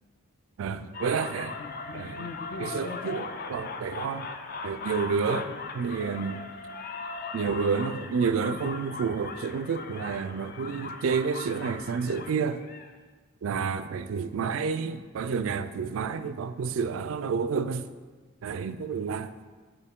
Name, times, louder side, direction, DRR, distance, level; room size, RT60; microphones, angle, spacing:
voice 1, 0.6-1.6 1.9-2.3 2.6-4.3 4.6-5.5 5.7-6.5 7.3-12.6 13.4-17.9 18.4-19.3, right 5 dB, 75° right, 0.3 m, -30 dB
sound 1, 0.9-12.9, left 4 dB, 45° left, 0.4 m, -39 dB
6.8 x 5.0 x 3.6 m
head